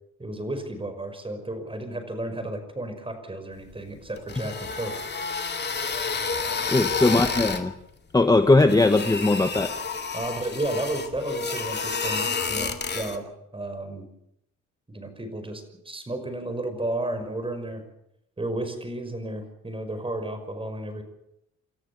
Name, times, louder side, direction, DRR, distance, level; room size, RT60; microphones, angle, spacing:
voice 1, 0.2-5.0 7.1-7.2 10.1-14.1 14.9-17.8 18.4-21.0, right 1 dB, 20° right, 8 dB, 5.5 m, -33 dB
sound 1, 4.2-7.7 8.6-13.2, left 4 dB, 35° left, 2.5 m, -30 dB
voice 2, 6.7-7.7 8.1-9.7, left 2 dB, 15° left, 7 dB, 1.3 m, -19 dB
29.0 x 13.5 x 7.1 m, 0.81 s
cardioid pair, 90°, 30 cm